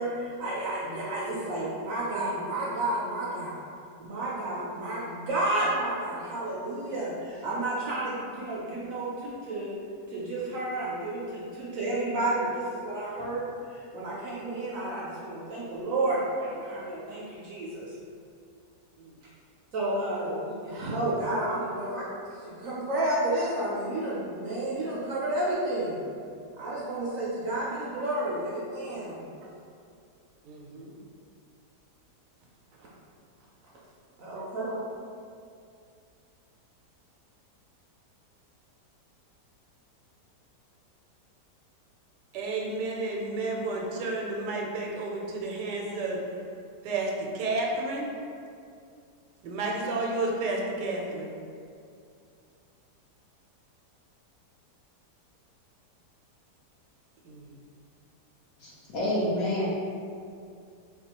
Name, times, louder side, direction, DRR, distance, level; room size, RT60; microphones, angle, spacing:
voice 1, 0.0-3.6 4.0-9.7 10.1-17.9 19.7-22.1 22.4-26.0 26.6-29.3 34.2-34.8, right 1 dB, 65° right, -7 dB, 0.8 m, -31 dB
voice 2, 30.4-31.0 42.3-46.2 46.8-48.1 49.4-51.3 57.3-57.5, right 2 dB, 85° right, -1 dB, 1.2 m, -31 dB
voice 3, 58.6-59.7, left 1 dB, 60° left, -7 dB, 1.1 m, -28 dB
4.2 x 2.3 x 2.8 m, 2.4 s
omnidirectional pair, 1.8 m